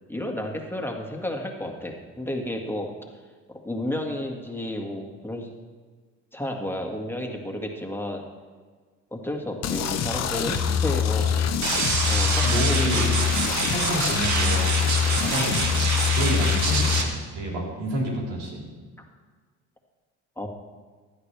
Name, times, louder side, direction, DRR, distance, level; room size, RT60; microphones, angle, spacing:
voice 1, 0.1-2.9 3.5-5.5 6.3-8.2 9.1-11.3 12.1-13.1 20.4-20.5, left 1 dB, 5° left, 2 dB, 1.9 m, -31 dB
sound 1, 9.6-17.0, left 8 dB, 55° left, 1.0 m, -24 dB
voice 2, 11.2-11.6 12.4-13.2 13.7-14.8 15.1-15.6 16.1-17.1 17.3-18.7, right 1 dB, 85° right, -3 dB, 3.8 m, -29 dB
sound 2, 11.6-17.0, right 4 dB, 60° right, 1.9 m, -26 dB
16.0 x 11.0 x 3.4 m, 1.5 s
supercardioid pair, 85°, 32 cm